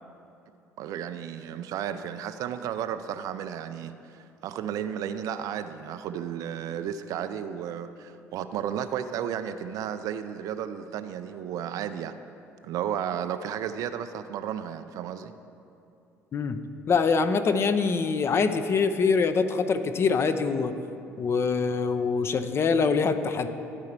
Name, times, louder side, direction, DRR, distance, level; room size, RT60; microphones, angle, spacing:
voice 1, 0.8-12.1 12.6-15.3, right 9 dB, 50° right, 10 dB, 0.4 m, -33 dB
voice 2, 16.9-20.7 21.2-23.5, left 5 dB, 35° left, 9 dB, 0.5 m, -24 dB
12.5 x 4.7 x 4.6 m, 2.7 s
figure-of-eight pair, 55°, 7 cm